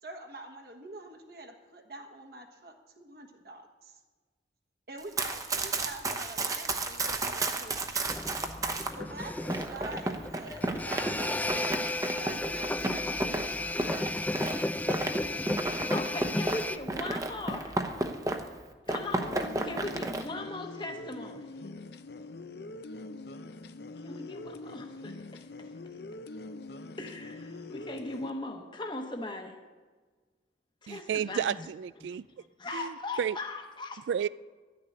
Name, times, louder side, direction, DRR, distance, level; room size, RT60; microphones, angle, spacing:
voice 1, 0.0-4.0 4.9-8.4 9.0-13.1, right 2 dB, 60° right, 1.4 m, -46 dB
Run, 5.0-8.9 9.5-18.6 18.9-20.2, right 2 dB, 20° right, 0.8 m, -33 dB
sound 1, 8.1-16.8, left 1 dB, 10° left, 0.3 m, -33 dB
voice 2, 15.8-17.9 18.9-21.5 24.0-25.7 27.0-29.7 30.8-31.6 32.0-32.2 32.6-34.1, left 2 dB, 25° left, 1.0 m, -39 dB
Polyphonic vocals, 19.0-28.3, left 2 dB, 65° left, 0.6 m, -44 dB
voice 3, 30.9-32.2 32.7-33.4 34.1-34.3, right 8 dB, 85° right, 0.3 m, -32 dB
12.0 x 6.7 x 9.8 m
head